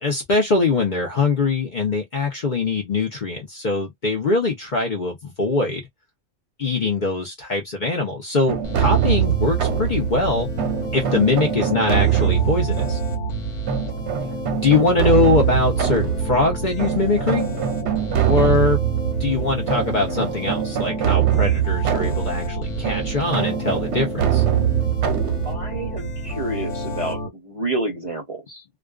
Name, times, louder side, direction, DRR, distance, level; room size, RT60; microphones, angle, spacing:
voice 1, 0.0-5.8 6.6-10.5 10.9-13.0 14.5-17.5 18.2-18.8 19.2-24.4, left 3 dB, 45° left, 0.7 m, -22 dB
sound 1, 8.5-27.2, right 9 dB, 65° right, 0.8 m, -23 dB
sound 2, 8.6-27.3, left 1 dB, 70° left, 1.2 m, -32 dB
voice 2, 25.4-28.6, right 2 dB, 35° right, 0.6 m, -29 dB
2.4 x 2.3 x 2.3 m
omnidirectional pair, 1.3 m